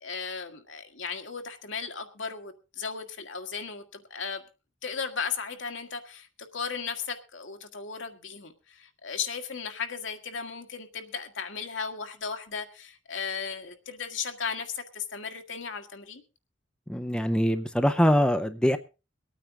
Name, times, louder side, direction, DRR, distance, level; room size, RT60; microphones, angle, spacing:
voice 1, 0.0-4.4 4.8-16.2, left 6 dB, 75° left, 1.7 m, -36 dB
voice 2, 16.9-18.8, equal, 5° left, 0.6 m, -23 dB
23.0 x 9.2 x 3.6 m
head